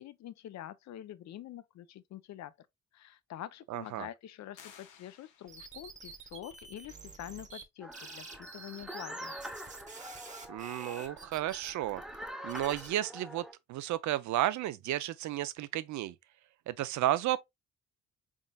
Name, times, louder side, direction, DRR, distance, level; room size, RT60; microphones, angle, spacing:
voice 1, 0.0-2.5 2.9-9.3, left 12 dB, 65° left, 0.5 m, -46 dB
voice 2, 3.7-4.1 10.5-12.0 12.4-16.2 16.7-17.4, right 14 dB, 70° right, 0.5 m, -33 dB
sound 1, 4.5-5.9, left 8 dB, 80° left, 0.9 m, -56 dB
sound 2, 5.5-7.6 7.9-12.9, right 3 dB, 25° right, 1.0 m, -48 dB
sound 3, 7.8-13.5, equal, ahead, 0.6 m, -45 dB
4.0 x 3.6 x 2.2 m
cardioid pair, 90°, 30 cm